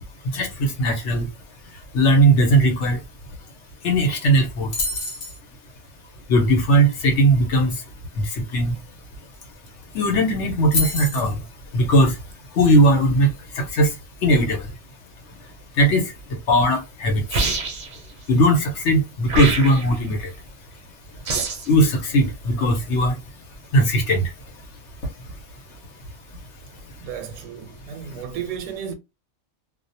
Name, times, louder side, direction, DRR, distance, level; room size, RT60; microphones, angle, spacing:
voice 1, 0.3-1.3 1.9-3.0 3.8-4.7 6.3-7.7 8.2-8.7 9.9-11.4 11.7-12.1 12.6-13.3 13.6-13.9 14.2-14.6 15.8-16.0 16.5-17.2 18.3-20.3 21.7-23.2 23.7-24.2, right 1 dB, 70° left, 1.1 m, -18 dB
sound 1, 4.7-5.4 9.3-9.4 9.7-10.0 10.7-11.3, left 3 dB, 40° left, 0.7 m, -26 dB
sound 2, 17.3-18.0 19.3-20.0 21.3-21.7, right 3 dB, 50° right, 0.6 m, -25 dB
voice 2, 27.0-28.9, right 8 dB, 85° right, 0.9 m, -33 dB
2.4 x 2.1 x 2.7 m
omnidirectional pair, 1.3 m